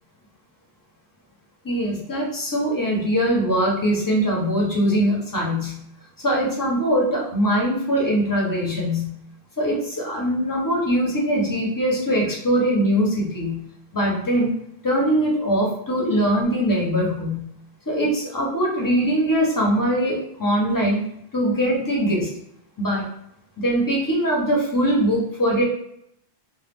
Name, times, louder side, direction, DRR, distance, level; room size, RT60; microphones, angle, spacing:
voice 1, 1.6-5.8 6.2-9.1 9.6-13.6 13.9-14.5 14.8-17.4 17.9-21.1 21.3-22.3 22.8-23.0 23.6-25.6, equal, 20° left, -3 dB, 0.7 m, -22 dB
2.3 x 2.2 x 3.5 m, 0.73 s
omnidirectional pair, 1.1 m